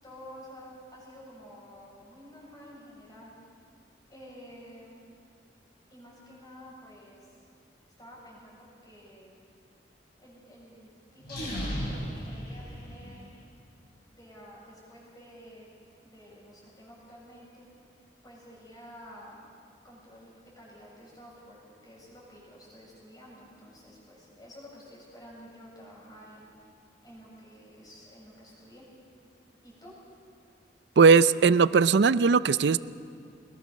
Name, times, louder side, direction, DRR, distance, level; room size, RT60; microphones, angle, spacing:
voice 1, 0.0-3.3 4.1-5.0 5.9-7.4 8.0-9.4 10.2-13.2 14.1-15.7 16.0-17.7 18.2-19.5 19.8-26.5 27.0-28.9 29.6-29.9, equal, 20° left, -4 dB, 7.4 m, -50 dB
sound 1, 11.2-13.3, equal, 60° left, 6.6 m, -35 dB
voice 2, 31.0-32.8, right 5 dB, 70° right, 16 dB, 0.5 m, -19 dB
22.0 x 21.5 x 6.3 m, 2.4 s
head